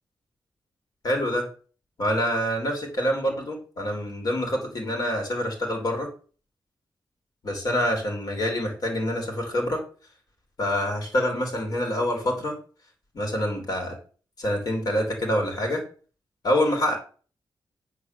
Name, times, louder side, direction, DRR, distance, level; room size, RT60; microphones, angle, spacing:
voice 1, 1.0-1.5 2.0-6.1 7.4-9.8 10.6-12.6 13.1-14.0 14.4-15.8 16.4-17.0, equal, 55° left, 3 dB, 3.6 m, -26 dB
9.0 x 4.7 x 6.8 m, 0.39 s
wide cardioid pair, 150°, 8 cm